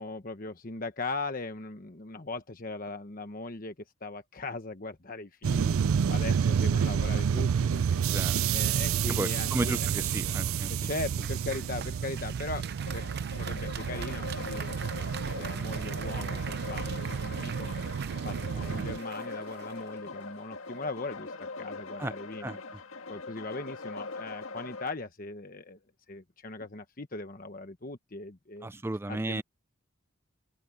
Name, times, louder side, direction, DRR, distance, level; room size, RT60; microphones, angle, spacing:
voice 1, 0.0-3.7 4.0-9.9 10.8-12.7 12.9-13.0 13.3-14.8 15.3-17.7 18.2-22.6 23.1-25.8 26.1-28.7 29.1-29.4, left 3 dB, 40° left, 1.1 m, -39 dB
sound 1, 5.4-19.0, right 7 dB, 80° right, 0.4 m, -30 dB
voice 2, 9.1-10.7 22.0-22.1 22.4-22.6 28.6-29.4, right 2 dB, 10° right, 0.3 m, -33 dB
Applause, 11.2-20.6, right 7 dB, 50° right, 0.7 m, -44 dB
sound 2, 12.9-24.9, left 3 dB, 75° left, 1.7 m, -42 dB
open air
head